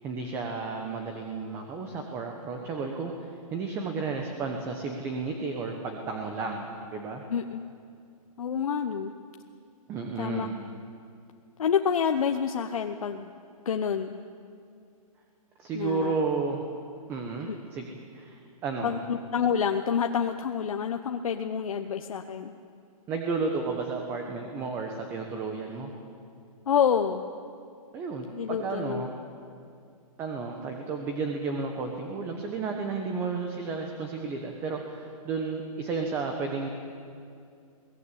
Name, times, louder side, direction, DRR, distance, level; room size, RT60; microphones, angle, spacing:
voice 1, 0.0-7.2 9.9-10.5 15.6-16.6 17.1-19.0 23.1-25.9 27.9-29.1 30.2-36.7, right 4 dB, 10° right, 3 dB, 1.1 m, -32 dB
voice 2, 7.3-7.6 8.4-9.1 10.2-10.5 11.6-13.3 13.6-14.1 15.7-16.2 17.5-17.6 18.8-22.5 26.7-27.2 28.3-29.1, left 7 dB, 65° left, 5 dB, 1.1 m, -28 dB
22.5 x 18.0 x 8.5 m, 2.4 s
hypercardioid pair, 170°, 19 cm